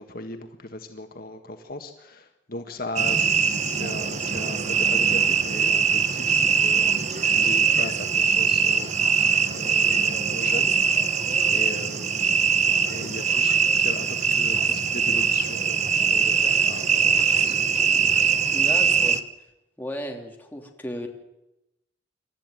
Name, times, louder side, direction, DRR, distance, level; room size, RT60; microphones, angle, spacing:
voice 1, 0.0-9.2 9.5-10.8 11.5-12.4 12.9-17.6, left 2 dB, 50° left, 6 dB, 1.7 m, -38 dB
sound 1, 3.0-19.2, right 6 dB, 40° right, 1.2 m, -22 dB
voice 2, 18.5-19.2 19.8-21.1, equal, 10° left, 1 dB, 3.1 m, -34 dB
28.5 x 13.5 x 9.2 m, 0.90 s
head